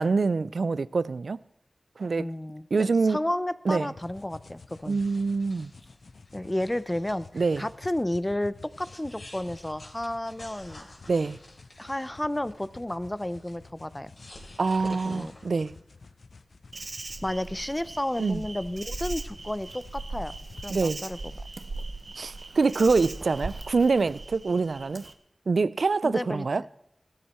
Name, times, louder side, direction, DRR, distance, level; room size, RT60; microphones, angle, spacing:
voice 1, 0.0-1.4 2.0-2.3 2.7-3.2 3.7-3.9 4.9-5.7 7.3-7.7 11.1-11.4 14.6-15.7 18.2-18.4 20.7-21.0 22.2-25.0 25.5-26.6, right 4 dB, 80° right, 0.4 m, -25 dB
voice 2, 2.2-5.0 6.3-10.8 11.8-14.1 14.8-15.3 17.2-20.3 20.6-21.2 26.0-26.5, left 1 dB, 15° left, 0.6 m, -32 dB
sound 1, 4.0-20.7, left 4 dB, 75° left, 0.7 m, -51 dB
sound 2, 4.8-7.9 8.2-8.3 8.6-13.5 14.1-15.7, left 1 dB, 55° left, 3.8 m, -51 dB
Insect, 16.7-25.1, right 3 dB, 60° right, 1.0 m, -39 dB
16.5 x 12.5 x 4.4 m
wide cardioid pair, 80°, 0 cm